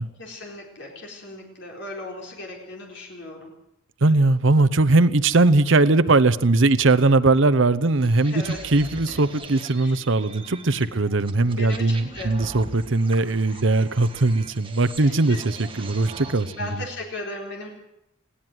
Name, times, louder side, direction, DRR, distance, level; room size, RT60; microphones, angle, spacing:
voice 1, 0.2-3.5 8.2-8.6 9.1-9.2 9.5-10.0 11.3-12.3 13.5-13.6 15.0-15.4 16.4-17.7, left 2 dB, 60° left, 0 dB, 4.3 m, -37 dB
voice 2, 4.0-16.5, right 2 dB, 65° right, 14 dB, 0.9 m, -20 dB
sound 1, 8.0-16.8, right 3 dB, 25° right, 1.8 m, -41 dB
20.0 x 16.5 x 7.9 m, 0.82 s
head